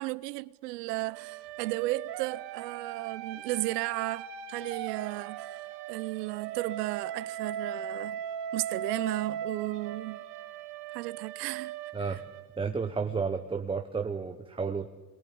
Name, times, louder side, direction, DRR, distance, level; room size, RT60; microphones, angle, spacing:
voice 1, 0.0-5.5 5.9-8.2 8.5-10.2 10.9-11.7 12.1-12.2, right 19 dB, 80° right, 0.9 m, -34 dB
sound 1, 1.1-12.9, right 9 dB, 55° right, 2.3 m, -39 dB
voice 2, 12.6-14.9, right 5 dB, 10° right, 1.1 m, -32 dB
26.5 x 22.5 x 8.6 m
supercardioid pair, 125°, 47 cm